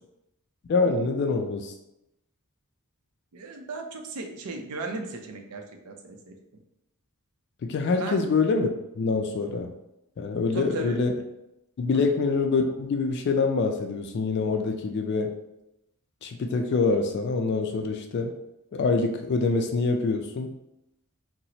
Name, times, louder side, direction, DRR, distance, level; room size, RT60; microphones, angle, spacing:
voice 1, 0.7-1.7 7.6-9.7 10.2-11.1 11.8-15.3 16.2-18.3 18.7-20.5, left 4 dB, 50° left, 4 dB, 0.3 m, -25 dB
voice 2, 3.3-6.3 8.0-8.2 10.5-11.0 11.9-12.1, right 3 dB, 90° right, 4 dB, 0.5 m, -36 dB
2.8 x 2.0 x 4.0 m, 0.86 s
head